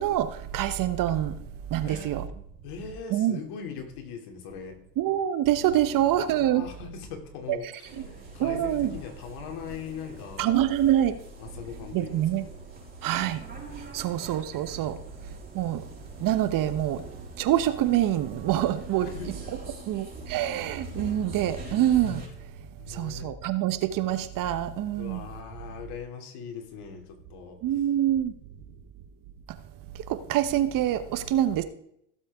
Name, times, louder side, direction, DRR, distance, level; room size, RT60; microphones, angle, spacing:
voice 1, 0.0-1.4 1.7-2.2 3.1-3.4 5.0-6.6 7.5-7.6 8.0-8.1 8.4-8.9 10.4-11.2 11.9-12.4 13.0-13.5 13.8-15.0 15.5-15.9 16.2-17.0 17.4-19.1 19.9-22.2 22.9-25.2 27.6-28.3 29.9-31.6, right 12 dB, 45° right, 12 dB, 1.0 m, -25 dB
voice 2, 1.8-2.2 2.6-4.8 6.1-10.6 11.4-12.5 14.0-14.2 19.0-19.3 22.8-23.3 25.0-27.6, left 6 dB, 55° left, 4 dB, 2.9 m, -40 dB
sound 1, 7.8-22.3, right 1 dB, 20° right, 5.0 m, -44 dB
16.0 x 7.6 x 3.6 m, 0.74 s
hypercardioid pair, 90°, 46 cm